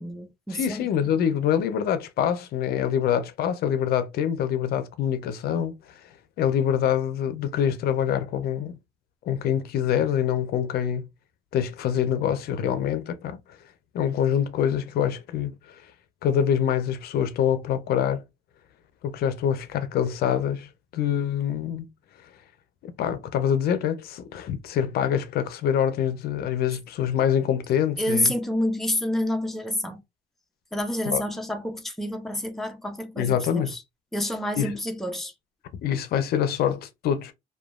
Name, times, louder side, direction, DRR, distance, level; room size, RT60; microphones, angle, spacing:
voice 1, 0.0-0.9 28.0-30.0 30.7-33.8 34.1-35.3, left 1 dB, ahead, 0.5 m, -28 dB
voice 2, 0.5-5.7 6.4-8.8 9.2-11.1 11.5-13.4 13.9-15.8 16.2-18.2 19.0-21.9 22.8-28.3 31.1-31.2 33.2-33.7 34.6-34.7 35.8-37.3, left 9 dB, 65° left, 0.5 m, -25 dB
2.9 x 2.2 x 2.3 m
cardioid pair, 110°, 17 cm